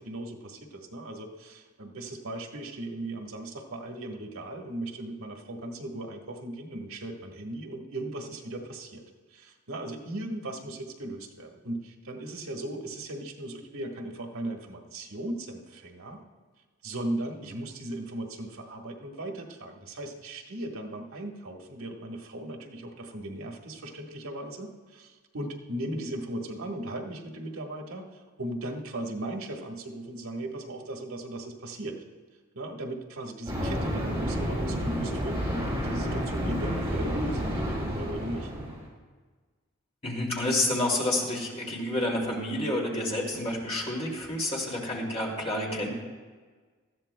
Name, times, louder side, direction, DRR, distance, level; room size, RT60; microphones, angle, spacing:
voice 1, 0.0-9.0 9.3-16.2 16.8-32.0 32.5-38.5, right 1 dB, 80° right, 2 dB, 1.4 m, -37 dB
sound 1, 33.5-38.8, equal, 15° right, 4.1 m, -30 dB
voice 2, 40.0-45.9, left 1 dB, 25° left, -3 dB, 2.4 m, -29 dB
19.0 x 14.0 x 2.2 m, 1.4 s
head